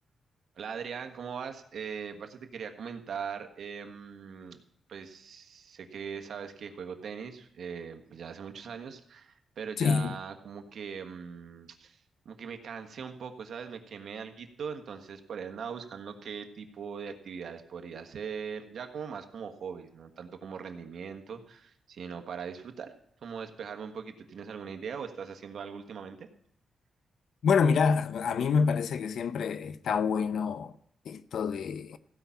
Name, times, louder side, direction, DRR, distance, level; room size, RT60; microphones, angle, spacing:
voice 1, 0.6-4.6 4.9-12.0 12.2-22.9 23.2-26.3, right 6 dB, 65° right, 1.4 m, -40 dB
voice 2, 9.8-10.2 27.4-30.7 31.1-32.0, left 6 dB, 70° left, 0.6 m, -27 dB
16.0 x 5.8 x 8.4 m
cardioid pair, 105°, 0 cm